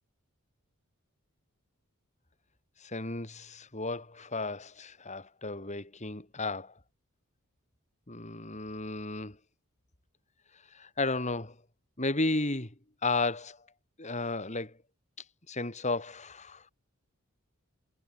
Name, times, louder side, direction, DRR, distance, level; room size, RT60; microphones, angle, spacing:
voice 1, 2.8-6.7 8.1-9.4 10.7-11.5 12.0-12.7 13.0-13.6 14.0-14.7 15.5-16.6, left 2 dB, 35° left, 3.5 m, -33 dB
head